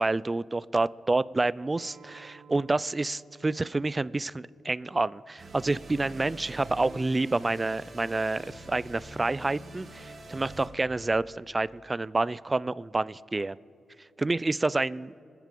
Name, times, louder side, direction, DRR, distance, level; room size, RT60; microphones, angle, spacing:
voice 1, 0.0-13.6 14.2-15.1, right 2 dB, 25° right, 19 dB, 0.3 m, -28 dB
Acoustic guitar, 1.8-7.0, right 5 dB, 65° right, 1.0 m, -57 dB
sound 1, 5.4-10.7, right 1 dB, 50° right, 3.4 m, -45 dB
26.0 x 9.1 x 3.8 m, 2.4 s
cardioid pair, 75°, 0 cm